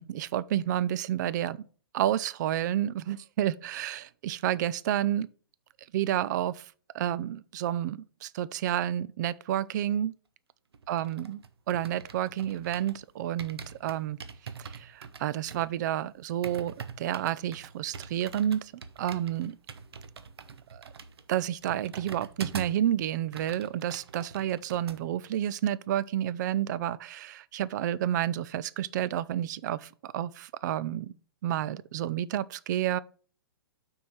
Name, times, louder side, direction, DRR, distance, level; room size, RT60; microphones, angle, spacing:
voice 1, 0.0-1.6 1.9-5.3 5.9-6.7 6.9-10.1 10.9-11.4 11.7-14.2 14.6-18.7 19.0-19.6 20.7-20.8 21.3-31.1 31.4-33.0, right 11 dB, 45° right, 0.4 m, -30 dB
sound 1, 10.7-13.0 13.4-22.9 23.2-25.0 25.3-25.5, right 6 dB, 80° right, 1.0 m, -44 dB
6.2 x 4.6 x 5.6 m
hypercardioid pair, 135°, 13 cm